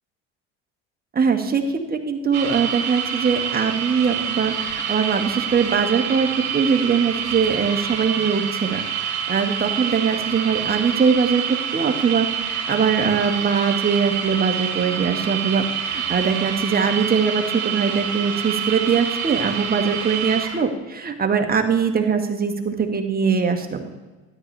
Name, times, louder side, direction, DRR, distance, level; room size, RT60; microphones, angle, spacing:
voice 1, 1.1-11.4 11.7-23.9, right 6 dB, 25° right, 4 dB, 1.6 m, -22 dB
sound 1, 2.3-20.6, right 8 dB, 45° right, 2.6 m, -27 dB
12.5 x 9.9 x 3.4 m, 1.2 s
hypercardioid pair, 70°, 35 cm